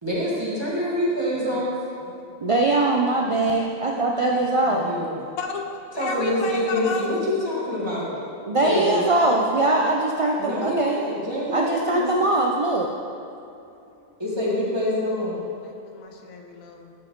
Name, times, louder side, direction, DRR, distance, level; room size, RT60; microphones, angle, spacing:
voice 1, 0.0-1.8 4.3-5.1 5.9-8.1 8.6-9.1 10.4-12.1 14.2-15.4, left 1 dB, 20° right, -7 dB, 1.9 m, -26 dB
voice 2, 2.4-4.8 8.5-11.0 11.5-12.9, right 2 dB, 50° right, -1 dB, 0.4 m, -21 dB
voice 3, 5.9-7.1 15.6-16.9, left 5 dB, 80° left, 3 dB, 1.3 m, -32 dB
13.5 x 5.7 x 3.9 m, 2.7 s
omnidirectional pair, 1.4 m